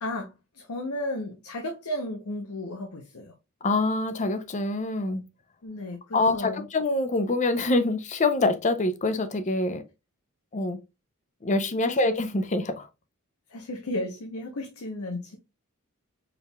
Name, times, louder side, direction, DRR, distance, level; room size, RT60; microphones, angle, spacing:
voice 1, 0.0-3.3 5.6-6.7 13.5-15.4, left 1 dB, 90° left, 0.7 m, -34 dB
voice 2, 3.6-5.2 6.1-9.8 10.5-10.8 11.4-12.9, left 2 dB, 35° left, 0.5 m, -25 dB
4.6 x 3.4 x 2.2 m
head